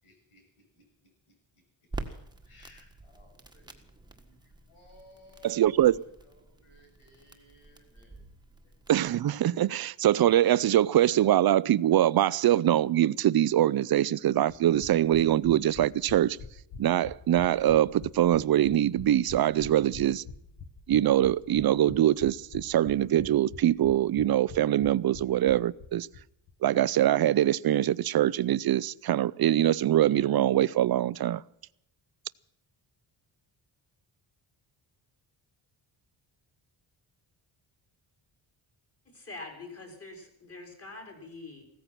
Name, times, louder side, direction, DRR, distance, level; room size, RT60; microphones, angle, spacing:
voice 1, 0.0-0.8 1.3-1.4 2.1-2.2 2.5-8.2 25.2-25.3, left 1 dB, 80° left, 7.2 m, -59 dB
Crackle, 1.9-9.2, right 2 dB, 10° right, 1.5 m, -46 dB
voice 2, 5.4-6.0 8.9-16.4 16.8-20.2 20.9-26.1 26.6-31.4, right 12 dB, 50° right, 0.5 m, -23 dB
sound 1, 14.5-26.2 26.5-26.6 26.8-26.9, left 5 dB, 45° left, 1.4 m, -46 dB
voice 3, 39.0-41.6, left 3 dB, 30° left, 4.6 m, -44 dB
16.5 x 14.0 x 6.0 m
wide cardioid pair, 160°, 49 cm